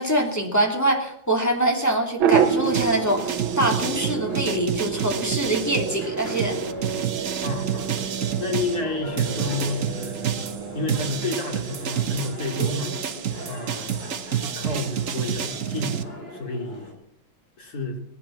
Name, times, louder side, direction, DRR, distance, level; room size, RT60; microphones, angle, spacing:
voice 1, 0.0-6.6, right 1 dB, 10° left, 0 dB, 2.9 m, -24 dB
sound 1, 2.2-11.3, right 8 dB, 80° right, 1.8 m, -28 dB
sound 2, 2.3-8.8 9.2-16.0, right 9 dB, 50° right, 1.1 m, -29 dB
sound 3, 2.4-16.9, left 1 dB, 30° left, 4.1 m, -40 dB
voice 2, 7.4-8.0 8.4-10.3 10.7-12.9 13.5-14.1 14.6-16.0 16.3-17.0 17.6-18.0, left 2 dB, 50° left, 3 dB, 3.2 m, -30 dB
18.5 x 10.0 x 7.4 m, 0.72 s
omnidirectional pair, 2.2 m